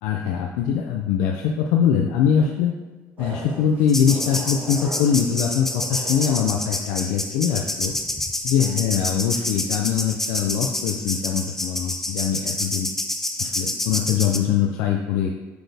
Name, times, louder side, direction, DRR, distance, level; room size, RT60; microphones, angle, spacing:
voice 1, 0.0-2.7 3.2-7.9 8.4-12.9 13.4-15.3, left 8 dB, 90° left, 2 dB, 0.5 m, -22 dB
sound 1, 3.2-6.5, right 2 dB, 30° right, 1.1 m, -38 dB
sound 2, 3.9-14.4, left 1 dB, 5° left, 0.4 m, -28 dB
7.9 x 4.2 x 3.4 m, 1.3 s
cardioid pair, 160°, 6 cm